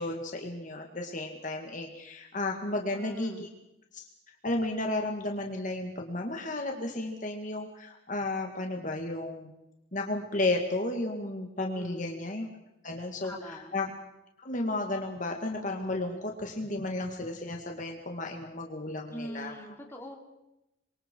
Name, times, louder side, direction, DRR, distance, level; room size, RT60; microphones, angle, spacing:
voice 1, 0.0-3.5 3.9-4.0 4.4-9.5 9.9-12.5 12.8-13.9 14.4-19.5, left 2 dB, 45° left, 2 dB, 2.1 m, -33 dB
voice 2, 2.9-3.5 11.7-12.0 13.2-13.8 19.1-20.2, equal, 15° left, 1 dB, 3.1 m, -43 dB
28.0 x 23.5 x 4.6 m, 0.89 s
head